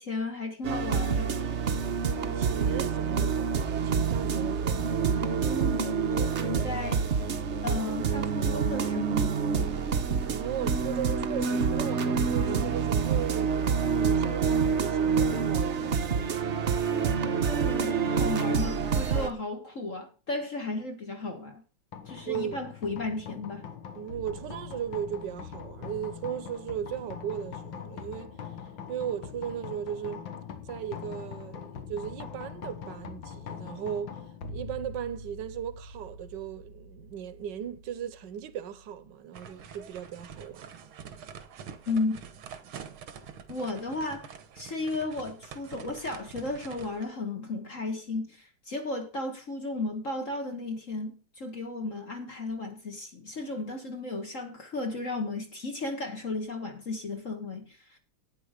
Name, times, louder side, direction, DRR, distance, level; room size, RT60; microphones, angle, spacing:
voice 1, 0.0-1.3 5.4-5.9 6.2-7.0 7.6-9.4 17.6-21.6 22.1-23.7 41.9-42.2 43.5-58.0, left 2 dB, 40° left, 1.9 m, -34 dB
sound 1, 0.6-19.3, right 6 dB, 45° right, 1.0 m, -27 dB
voice 2, 2.2-5.0 10.2-13.6 13.9-16.4 22.2-22.6 23.9-28.4 28.9-30.3 30.6-34.2 34.5-40.7, right 9 dB, 65° right, 1.5 m, -37 dB
sound 2, 21.9-39.1, left 6 dB, 70° left, 2.1 m, -43 dB
sound 3, 39.3-47.1, right 7 dB, 90° right, 2.0 m, -46 dB
12.0 x 9.3 x 5.0 m
omnidirectional pair, 2.2 m